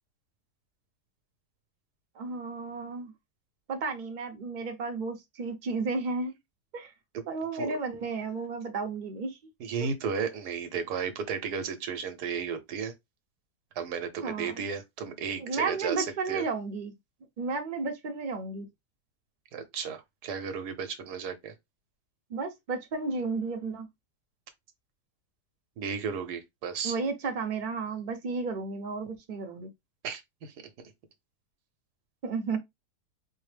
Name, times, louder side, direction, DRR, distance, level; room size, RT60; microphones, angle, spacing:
voice 1, 2.2-3.1 3.7-6.3 6.7-6.9 7.3-9.4 14.2-14.5 15.4-16.9 17.4-18.7 22.3-23.9 26.8-29.7 32.2-32.6, right 4 dB, 45° right, 0.6 m, -33 dB
voice 2, 9.6-12.9 13.7-16.4 19.5-21.5 25.8-27.0 30.0-30.5, right 6 dB, 75° right, 1.3 m, -34 dB
4.5 x 2.1 x 3.2 m
omnidirectional pair, 1.7 m